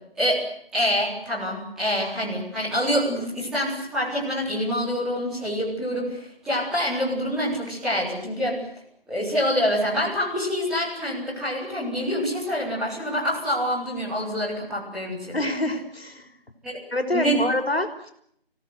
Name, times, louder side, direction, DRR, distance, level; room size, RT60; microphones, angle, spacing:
voice 1, 0.7-8.6 9.1-15.4 16.6-16.8 17.1-17.4, equal, ahead, -14 dB, 4.3 m, -26 dB
voice 2, 15.3-16.3 16.9-18.1, left 1 dB, 75° left, 6 dB, 5.3 m, -26 dB
29.5 x 17.5 x 9.7 m, 0.71 s
figure-of-eight pair, 175°, 31 cm